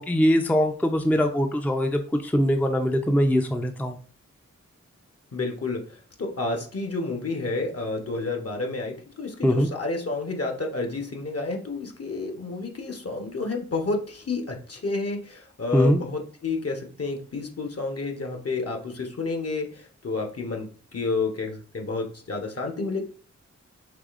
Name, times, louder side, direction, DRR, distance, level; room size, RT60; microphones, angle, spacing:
voice 1, 0.0-4.0 9.4-9.7 15.7-16.0, equal, 5° left, 4 dB, 0.5 m, -22 dB
voice 2, 5.3-23.0, left 3 dB, 50° left, 3 dB, 1.0 m, -30 dB
4.9 x 3.3 x 2.5 m, 0.41 s
cardioid pair, 40°, 30 cm